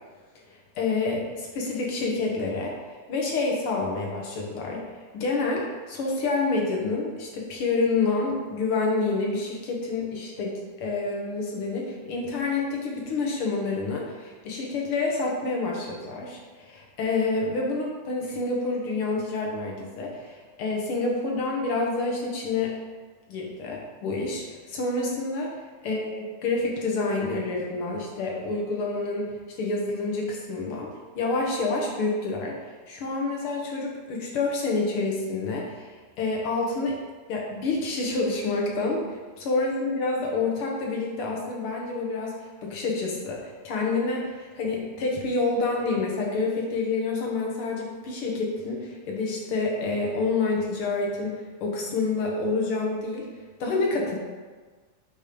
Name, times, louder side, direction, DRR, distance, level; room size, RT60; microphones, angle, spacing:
voice 1, 0.5-2.7 3.1-4.8 5.1-22.7 23.3-25.5 25.8-30.9 31.1-32.5 32.9-36.9 37.3-42.3 42.6-53.3 53.6-54.2, left 3 dB, 60° left, -1 dB, 1.5 m, -28 dB
8.5 x 3.1 x 5.2 m, 1.4 s
omnidirectional pair, 3.5 m